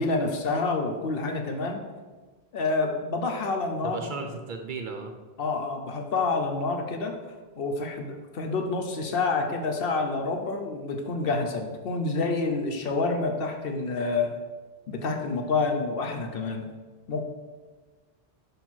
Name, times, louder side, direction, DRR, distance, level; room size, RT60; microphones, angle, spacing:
voice 1, 0.0-1.8 2.5-4.1 5.4-7.1 7.6-14.3 14.9-16.6 17.1-17.2, left 3 dB, 50° left, 4 dB, 1.0 m, -28 dB
voice 2, 3.8-5.2, right 4 dB, 50° right, 4 dB, 0.7 m, -35 dB
5.2 x 4.4 x 6.2 m, 1.3 s
omnidirectional pair, 1.3 m